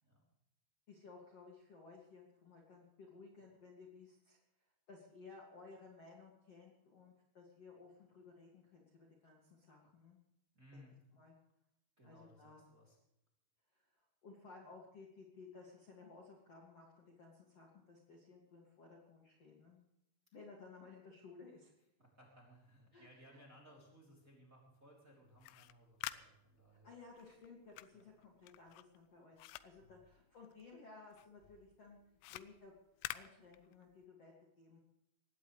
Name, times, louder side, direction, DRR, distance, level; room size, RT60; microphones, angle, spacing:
voice 1, 0.9-4.4 4.9-10.2 10.7-10.8 11.1-11.3 12.0-12.6 13.7-19.8 20.3-21.7 22.9-23.4 26.7-32.0 32.3-32.7 33.1-34.8, left 4 dB, 45° left, -2 dB, 2.3 m, -58 dB
voice 2, 10.5-10.9 12.0-13.0 22.0-27.0 27.9-28.1 29.8-29.9, equal, 20° right, -1 dB, 2.6 m, -62 dB
sound 1, 25.3-30.8 31.1-34.1, left 16 dB, 85° left, 3.2 m, -50 dB
20.5 x 16.5 x 3.3 m, 0.85 s
omnidirectional pair, 5.6 m